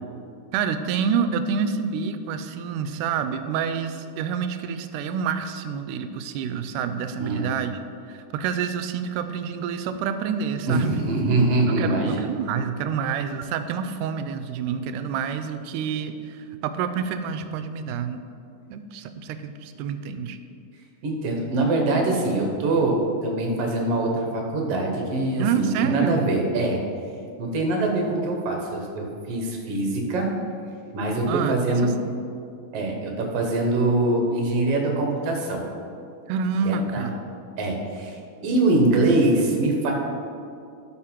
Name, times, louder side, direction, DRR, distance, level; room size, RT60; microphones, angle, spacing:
voice 1, 0.5-7.8 8.1-11.1 11.7-18.2 18.7-20.4 25.4-26.3 31.3-32.2 36.3-37.1, right 6 dB, 80° right, 9 dB, 2.0 m, -28 dB
voice 2, 7.2-7.5 10.7-12.2 21.0-26.8 27.4-30.3 30.9-31.9 32.7-35.6 36.6-37.1 37.6-39.9, right 2 dB, 60° right, 1 dB, 1.8 m, -23 dB
12.5 x 4.7 x 4.4 m, 2.5 s
omnidirectional pair, 3.7 m